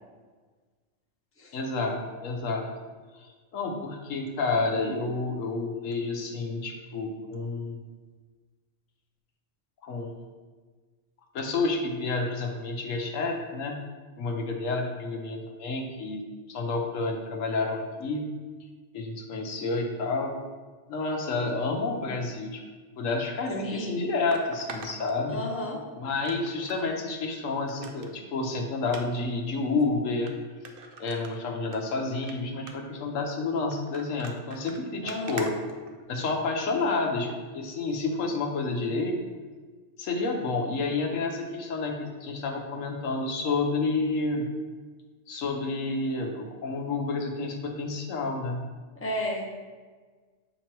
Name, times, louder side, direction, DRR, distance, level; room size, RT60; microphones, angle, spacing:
voice 1, 1.5-2.7 3.1-3.3 3.5-7.8 9.8-10.3 11.3-13.8 14.2-16.2 16.5-18.3 18.9-20.3 20.9-22.6 23.0-25.4 26.0-30.3 31.0-35.5 36.1-37.3 37.5-39.1 40.0-44.5 45.3-48.6, left 3 dB, 80° left, 2 dB, 1.1 m, -30 dB
sound 1, 23.2-23.3 24.3-25.7 26.2-26.8 27.2-27.3 27.7-28.1 28.8-29.0 29.8-29.9 30.3-30.4 30.6-31.8 32.1-32.3 32.7-33.0 33.7-36.4 37.2-37.4 37.9-38.0, right 4 dB, 55° right, 0.7 m, -43 dB
voice 2, 23.6-24.0 25.3-25.8 35.0-35.5 48.9-49.6, left 1 dB, 10° left, -2 dB, 0.8 m, -33 dB
7.3 x 3.0 x 4.5 m, 1.4 s
omnidirectional pair, 1.3 m